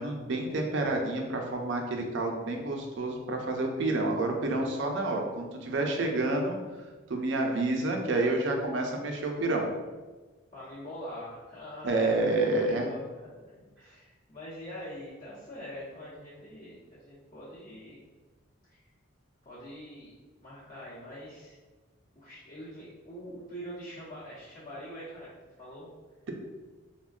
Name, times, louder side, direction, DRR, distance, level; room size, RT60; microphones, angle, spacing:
voice 1, 0.0-6.6 7.1-9.7 11.8-12.9, right 2 dB, 70° right, 2 dB, 0.4 m, -29 dB
voice 2, 10.5-18.0 18.7-18.8 19.4-20.1 20.4-21.6 22.1-25.3 25.6-25.9, equal, 45° left, -11 dB, 0.8 m, -44 dB
3.4 x 2.1 x 2.3 m, 1.3 s
head